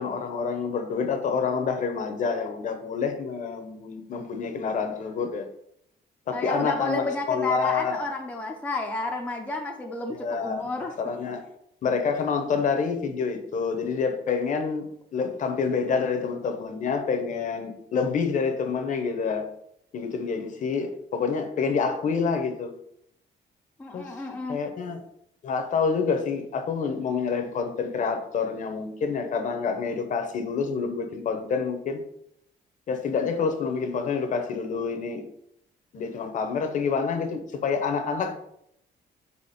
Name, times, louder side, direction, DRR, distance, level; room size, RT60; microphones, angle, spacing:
voice 1, 0.0-5.5 6.3-8.0 10.2-10.6 11.0-11.4 11.8-14.8 15.1-19.4 19.9-22.7 23.9-24.1 24.5-25.0 25.4-32.0 32.9-35.2 35.9-38.3, left 5 dB, 45° left, 7 dB, 0.7 m, -27 dB
voice 2, 6.3-10.9 23.8-24.6, left 2 dB, 10° left, 1 dB, 0.5 m, -31 dB
4.7 x 4.2 x 4.9 m, 0.73 s
cardioid pair, 180°, 18 cm